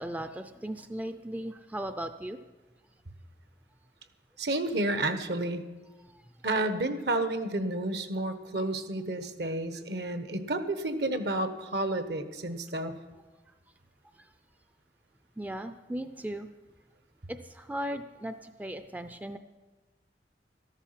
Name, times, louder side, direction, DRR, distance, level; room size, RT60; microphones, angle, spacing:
voice 1, 0.0-2.4 6.1-6.2 14.2-14.3 15.4-16.5 17.3-19.4, right 1 dB, 10° right, 8 dB, 0.4 m, -37 dB
voice 2, 4.4-5.6 6.4-12.9, right 2 dB, 65° right, 9 dB, 1.1 m, -31 dB
13.5 x 13.0 x 5.7 m, 1.2 s
head